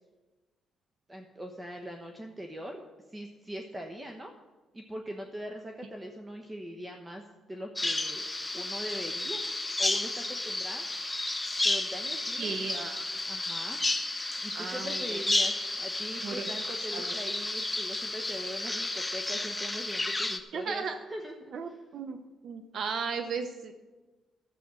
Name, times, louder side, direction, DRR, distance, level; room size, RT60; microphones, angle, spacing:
voice 1, 1.1-4.3 4.7-7.2 7.5-8.2 8.5-9.4 9.8-10.9 11.6-12.5 13.3-13.8 14.4-20.8 21.1-21.7, equal, 15° right, 3 dB, 1.1 m, -41 dB
Bird vocalization bird call bird song, 7.8-20.4, left 2 dB, 15° left, 0.9 m, -32 dB
voice 2, 12.4-13.1 14.5-15.2 16.2-16.5 16.9-17.1 20.5-21.0 21.5-22.2 22.4-23.7, right 5 dB, 60° right, 8 dB, 0.8 m, -35 dB
12.0 x 7.9 x 6.2 m, 1.2 s
cardioid pair, 90°, 0 cm